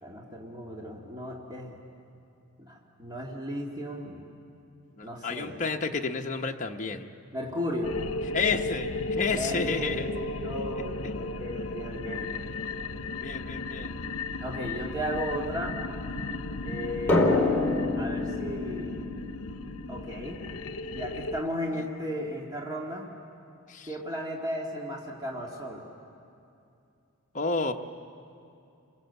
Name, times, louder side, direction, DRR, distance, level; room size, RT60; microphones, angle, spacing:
voice 1, 0.0-1.8 2.6-4.2 5.0-5.5 7.3-8.0 9.3-12.4 14.4-15.8 16.6-17.4 18.0-19.0 19.9-20.4 20.9-23.1 23.9-25.9, equal, 20° right, -2 dB, 2.1 m, -35 dB
voice 2, 5.0-7.1 8.3-8.9 9.2-10.1 13.2-14.0 23.7-23.9 27.3-27.7, left 4 dB, 35° left, 2 dB, 1.0 m, -30 dB
sound 1, 7.8-21.4, left 2 dB, 80° left, 0.8 m, -35 dB
Drum, 17.1-20.4, left 2 dB, 10° left, 2.7 m, -27 dB
30.0 x 22.0 x 8.1 m, 2.6 s
head